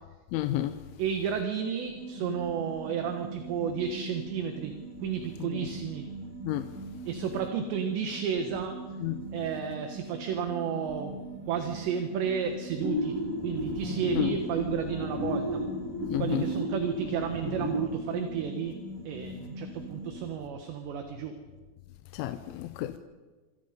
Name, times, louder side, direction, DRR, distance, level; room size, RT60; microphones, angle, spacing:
voice 1, 0.3-0.8 5.5-5.7 6.4-6.7 9.0-9.2 14.2-14.3 16.1-16.5 22.1-23.0, left 14 dB, 80° left, 3.1 m, -31 dB
voice 2, 1.0-4.7 5.0-6.1 7.1-8.8 9.3-13.2 13.4-15.6 16.2-18.8 19.1-21.4, right 7 dB, 70° right, 3.5 m, -32 dB
sound 1, 1.9-20.2, right 1 dB, 45° right, 8.0 m, -42 dB
sound 2, 12.8-17.9, equal, 30° right, 7.3 m, -33 dB
27.5 x 26.5 x 5.2 m
omnidirectional pair, 5.6 m